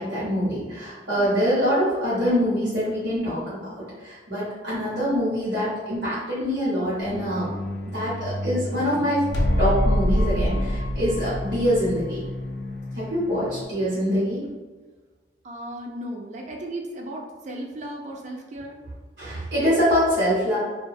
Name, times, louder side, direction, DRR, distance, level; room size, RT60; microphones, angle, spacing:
voice 1, 0.0-7.5 7.8-9.2 9.6-12.2 12.9-14.4 19.2-20.6, equal, 75° right, -11 dB, 0.9 m, -24 dB
voice 2, 1.0-1.4 15.4-18.8, right 1 dB, 40° right, 1 dB, 0.3 m, -35 dB
sound 1, 7.0-13.6, left 1 dB, 65° left, 0.3 m, -27 dB
2.2 x 2.2 x 2.6 m, 1.3 s
head